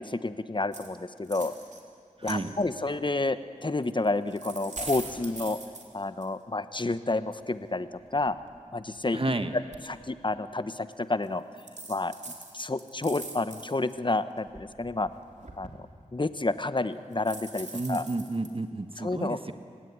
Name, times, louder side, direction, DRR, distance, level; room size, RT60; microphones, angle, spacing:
voice 1, 0.0-1.5 2.2-5.6 5.9-8.4 8.7-9.2 9.9-11.4 11.9-12.1 12.5-15.1 15.6-15.7 16.1-18.0 19.0-19.4, left 2 dB, 35° left, 12 dB, 1.1 m, -30 dB
sound 1, 0.7-0.9 1.2-1.8 2.2-2.8 4.0-6.3 7.4-7.5 7.9-9.2 9.7-9.8 10.3-10.5 11.2-11.3 11.6-13.9 14.4-15.8 17.1-18.5, right 3 dB, 60° right, 3.5 m, -42 dB
voice 2, 2.2-2.5 9.1-9.5 17.7-19.5, right 2 dB, 40° right, 8 dB, 1.3 m, -31 dB
29.5 x 17.0 x 9.6 m, 2.3 s
cardioid pair, 40°, 13 cm